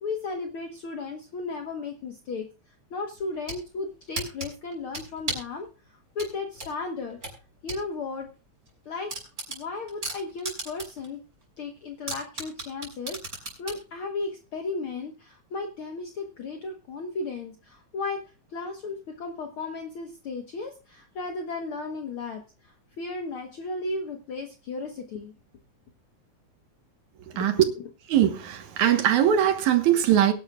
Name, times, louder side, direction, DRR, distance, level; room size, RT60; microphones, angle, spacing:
voice 1, 0.0-2.5 2.9-7.2 7.6-8.3 8.9-9.1 9.5-11.2 11.6-18.2 18.5-25.3 27.3-27.7, left 3 dB, 55° left, 1.9 m, -35 dB
sound 1, 3.2-3.6 4.2-5.5 6.2-7.8 8.2-8.3 8.7-8.8 9.1-11.1 11.4-11.5 12.1-13.8, right 2 dB, 30° right, 5.8 m, -34 dB
voice 2, 27.3-27.6 28.1-30.3, right 10 dB, 80° right, 2.8 m, -21 dB
22.5 x 11.0 x 2.4 m
omnidirectional pair, 3.3 m